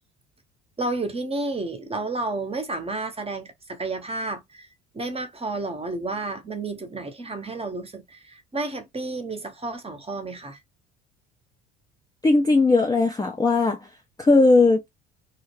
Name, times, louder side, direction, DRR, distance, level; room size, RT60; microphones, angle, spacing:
voice 1, 0.8-4.7 4.9-10.6, right 2 dB, 20° right, 0.8 m, -31 dB
voice 2, 12.2-13.8 14.2-14.8, left 3 dB, 10° left, 0.5 m, -18 dB
2.4 x 2.1 x 3.1 m
hypercardioid pair, 60°, 33 cm